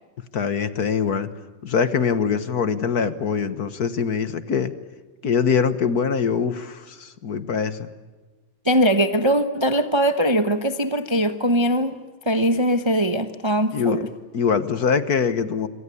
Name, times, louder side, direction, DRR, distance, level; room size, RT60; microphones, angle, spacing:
voice 1, 0.3-1.3 1.6-4.7 5.2-7.9 13.7-14.0 14.3-15.7, left 6 dB, 55° left, 12 dB, 1.6 m, -23 dB
voice 2, 8.6-12.0 12.3-14.1, equal, 20° right, 8 dB, 0.8 m, -21 dB
27.5 x 24.5 x 8.5 m, 1.3 s
omnidirectional pair, 2.2 m